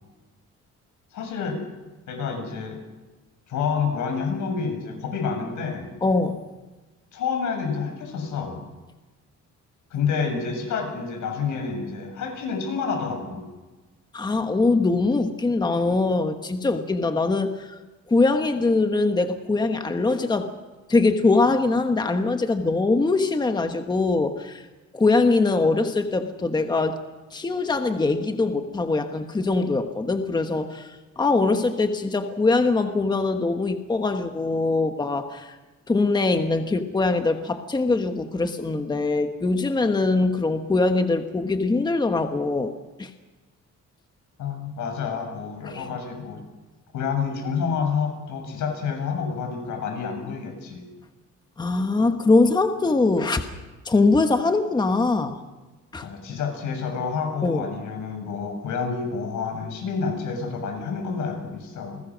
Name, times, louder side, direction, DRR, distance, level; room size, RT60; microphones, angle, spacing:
voice 1, 1.1-1.6 2.1-2.8 3.5-5.9 7.1-8.6 9.9-13.4 44.4-46.4 46.9-50.8 56.0-62.0, left 5 dB, 85° left, 4 dB, 7.4 m, -28 dB
voice 2, 6.0-6.4 14.1-17.8 18.1-20.5 20.9-24.6 24.9-27.0 27.3-35.6 35.9-42.7 43.0-43.1 45.6-45.9 51.6-53.5 53.8-55.4 55.9-56.1 57.4-57.7, left 3 dB, 15° left, 7 dB, 1.3 m, -22 dB
29.5 x 20.5 x 6.3 m, 1.2 s
cardioid pair, 170°, 29 cm